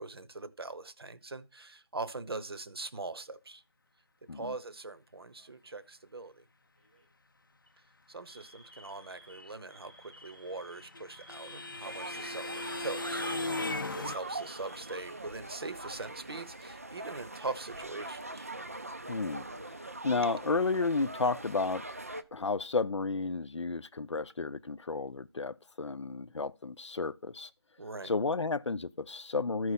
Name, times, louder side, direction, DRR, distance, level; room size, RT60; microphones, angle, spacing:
voice 1, 0.0-3.6 4.2-6.4 8.1-13.5 13.9-18.5 27.8-28.1, right 3 dB, 55° right, 0.9 m, -42 dB
Alarm, 5.4-5.9 6.8-7.1 7.5-7.7 8.3-15.8 16.1-16.2 17.2-17.9, right 1 dB, 5° right, 0.9 m, -58 dB
sound 1, 10.3-14.2, left 2 dB, 45° left, 0.5 m, -37 dB
sound 2, 11.8-22.2, right 2 dB, 30° right, 0.4 m, -42 dB
voice 2, 13.6-14.0 19.1-19.4 19.8-21.8 22.3-27.5 28.0-29.7, left 4 dB, 85° left, 0.7 m, -32 dB
14.0 x 4.7 x 4.1 m
figure-of-eight pair, 175°, 15 cm